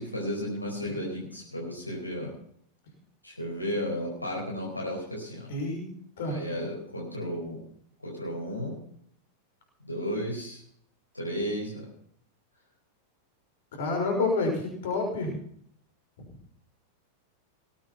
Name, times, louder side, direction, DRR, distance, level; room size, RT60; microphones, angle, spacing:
voice 1, 0.0-2.3 3.2-5.5 6.3-7.6 8.0-8.7 9.8-10.6 11.1-11.9, equal, 85° left, -3 dB, 4.6 m, -33 dB
voice 2, 5.5-5.9 6.2-6.4 13.7-15.4, left 3 dB, 60° left, 3 dB, 5.8 m, -28 dB
19.0 x 8.8 x 5.8 m, 0.65 s
figure-of-eight pair, 90°, 0 cm